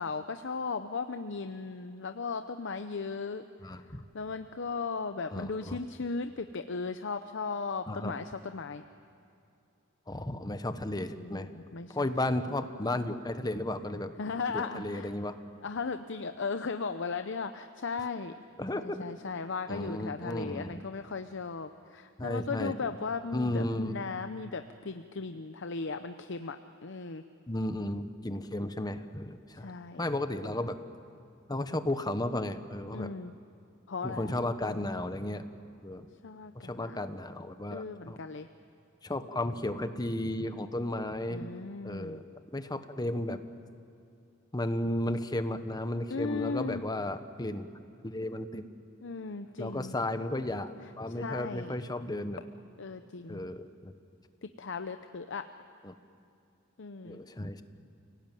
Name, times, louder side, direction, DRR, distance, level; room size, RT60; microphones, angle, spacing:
voice 1, 0.0-3.8 4.1-8.8 10.9-12.1 14.2-15.1 15.6-18.3 18.7-27.2 29.5-30.1 32.9-33.3 33.9-34.3 36.2-37.0 37.7-38.5 41.3-42.2 46.1-46.8 49.0-49.9 51.1-51.7 52.8-53.4 54.6-55.5 56.8-57.2, left 4 dB, 65° left, 8 dB, 0.7 m, -37 dB
voice 2, 3.6-4.0 5.3-5.8 7.9-8.1 10.1-11.5 11.9-14.1 14.5-15.4 18.6-19.0 19.7-20.8 22.2-22.7 23.3-24.0 27.5-29.7 30.0-30.8 31.5-33.1 34.0-35.5 35.8-36.1 36.5-38.2 39.0-41.5 41.8-43.4 44.5-47.7 48.0-48.6 49.6-52.4 53.3-53.9 55.8-55.9 57.0-57.6, left 1 dB, 20° left, 10 dB, 1.1 m, -34 dB
29.0 x 18.0 x 9.1 m, 2.6 s
head